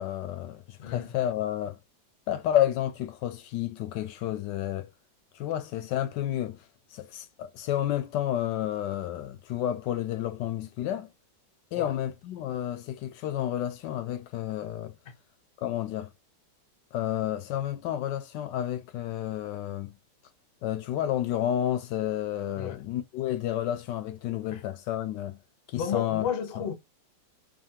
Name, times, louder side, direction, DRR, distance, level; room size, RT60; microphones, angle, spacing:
voice 1, 0.0-1.8 2.3-4.9 5.3-6.7 6.9-11.1 11.7-15.0 15.6-16.1 16.9-19.9 20.6-25.4 25.7-26.3 26.6-26.7, left 12 dB, 75° left, 1.2 m, -30 dB
voice 2, 25.8-26.7, left 8 dB, 50° left, 0.7 m, -32 dB
4.9 x 2.7 x 2.7 m
omnidirectional pair, 2.0 m